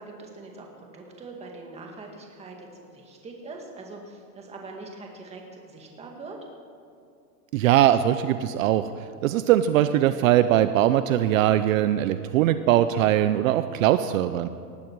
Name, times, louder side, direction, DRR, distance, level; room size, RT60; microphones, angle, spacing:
voice 1, 0.0-2.7 2.9-6.4, right 3 dB, 15° right, 1 dB, 2.0 m, -42 dB
voice 2, 7.5-8.9 9.2-14.5, right 12 dB, 60° right, 11 dB, 0.7 m, -21 dB
19.0 x 14.5 x 4.7 m, 2.5 s
supercardioid pair, 160°, 47 cm